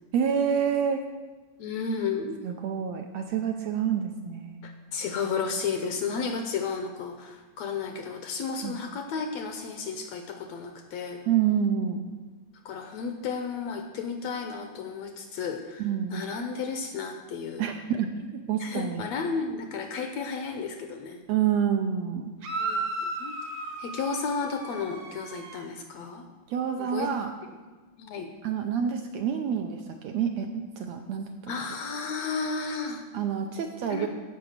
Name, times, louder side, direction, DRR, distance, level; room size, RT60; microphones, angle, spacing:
voice 1, 0.1-1.0 2.4-4.6 8.6-8.8 11.3-12.0 15.8-16.2 17.6-19.1 21.3-22.3 26.5-27.3 28.4-31.5 33.1-34.1, right 8 dB, 75° right, 5 dB, 1.7 m, -28 dB
voice 2, 1.6-2.4 4.6-11.2 12.6-17.7 18.6-21.2 22.6-23.4 23.8-26.3 26.8-27.1 28.0-28.3 31.5-33.0 33.9-34.1, left 5 dB, 70° left, 6 dB, 1.7 m, -33 dB
sound 1, 22.4-25.7, right 2 dB, 55° right, 1.5 m, -34 dB
15.5 x 5.8 x 6.5 m, 1.3 s
omnidirectional pair, 3.6 m